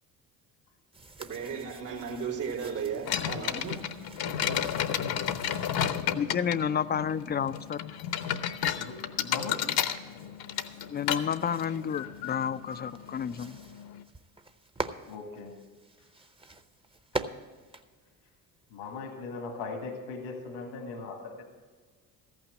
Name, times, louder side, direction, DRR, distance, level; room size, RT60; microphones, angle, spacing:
sound 1, 0.9-5.9 6.9-18.8, right 3 dB, 15° right, 0.7 m, -45 dB
voice 1, 1.2-3.9, right 6 dB, 85° right, 2.4 m, -35 dB
sound 2, 3.0-14.0, left 9 dB, 60° left, 0.8 m, -33 dB
voice 2, 4.2-5.9 8.3-9.6 10.2-10.3 15.0-15.6 17.1-17.2 18.7-21.4, left 3 dB, 85° left, 1.8 m, -41 dB
voice 3, 6.1-7.9 10.9-13.6, left 7 dB, 25° left, 0.3 m, -30 dB
14.0 x 6.0 x 7.4 m
hypercardioid pair, 65°, 43 cm